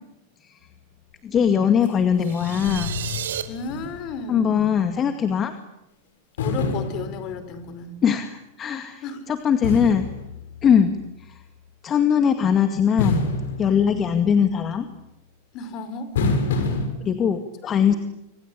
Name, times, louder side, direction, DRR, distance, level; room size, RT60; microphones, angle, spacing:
voice 1, 1.2-2.9 4.3-5.5 8.0-10.1 10.6-11.4 11.8-13.3 13.6-14.9 17.0-17.9, left 7 dB, 30° left, 8 dB, 2.1 m, -21 dB
sound 1, 1.8-1.9 2.2-4.3 4.6-4.7 6.4-7.7 9.6-11.0 13.0-14.5 16.2-16.9, left 3 dB, 75° left, 6.7 m, -28 dB
sound 2, 2.2-3.4, right 10 dB, 80° right, 2.7 m, -32 dB
voice 2, 3.5-4.6 6.4-8.0 9.0-9.2 15.5-16.1 17.6-18.0, left 5 dB, 45° left, 11 dB, 4.8 m, -34 dB
26.5 x 25.5 x 8.6 m, 0.85 s
hypercardioid pair, 115°, 0 cm